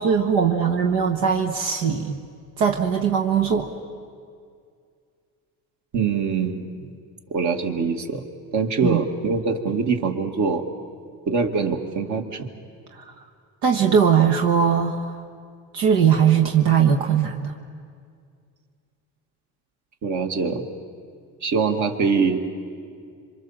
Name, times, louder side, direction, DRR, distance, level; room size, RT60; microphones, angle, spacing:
voice 1, 0.0-2.2 2.6-3.7 8.8-9.0 12.9-13.1 13.6-15.2 15.7-17.6, right 7 dB, 85° right, 4 dB, 1.4 m, -20 dB
voice 2, 5.9-6.9 7.3-8.3 8.5-10.7 11.3-12.5 20.0-20.6 21.4-22.4, right 5 dB, 55° right, 4 dB, 2.3 m, -23 dB
27.0 x 25.0 x 7.4 m, 2.2 s
cardioid pair, 95°, 34 cm